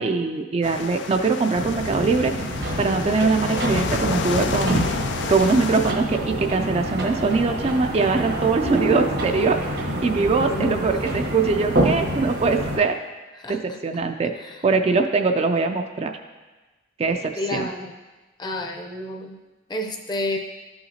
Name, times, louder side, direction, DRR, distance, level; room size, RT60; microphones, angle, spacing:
voice 1, 0.0-2.3 2.8-5.0 5.3-9.6 10.0-12.9 13.5-14.3 14.6-16.2 17.0-17.7, right 4 dB, 35° right, 6 dB, 0.4 m, -22 dB
sound 1, 0.6-5.9, left 4 dB, 85° left, 0.5 m, -30 dB
sound 2, 1.5-12.8, right 1 dB, 75° right, 1.2 m, -27 dB
voice 2, 10.5-10.9 13.4-13.8 14.4-14.6 17.4-17.9 18.4-19.4 19.7-20.4, left 1 dB, 25° left, 3 dB, 0.6 m, -30 dB
12.0 x 5.7 x 2.8 m, 1.2 s
head